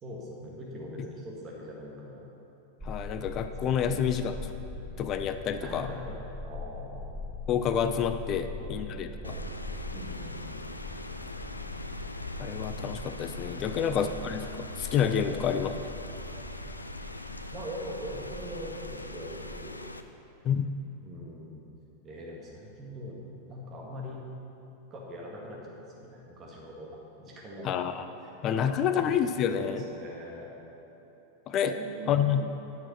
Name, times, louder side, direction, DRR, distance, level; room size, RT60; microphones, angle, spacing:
voice 1, 0.0-2.3 3.6-4.2 5.6-6.1 6.4-7.1 8.4-8.9 9.2-9.6 9.9-10.6 13.6-14.0 15.2-15.4 17.5-19.8 21.0-21.6 22.0-24.2 24.9-26.9 27.2-28.0 28.5-30.5 31.7-32.3, equal, 30° right, -2 dB, 2.1 m, -42 dB
voice 2, 2.8-4.4 5.0-5.9 7.5-9.1 12.4-15.7 20.4-20.7 27.6-28.0 28.4-29.8 31.5-31.8 32.1-32.5, left 8 dB, 35° left, 9 dB, 0.5 m, -28 dB
sound 1, 2.8-19.7, left 2 dB, 5° left, 1.1 m, -42 dB
Rain, 9.2-20.0, left 2 dB, 85° left, 0.4 m, -41 dB
10.5 x 6.2 x 5.8 m, 3.0 s
figure-of-eight pair, 90°, 0 cm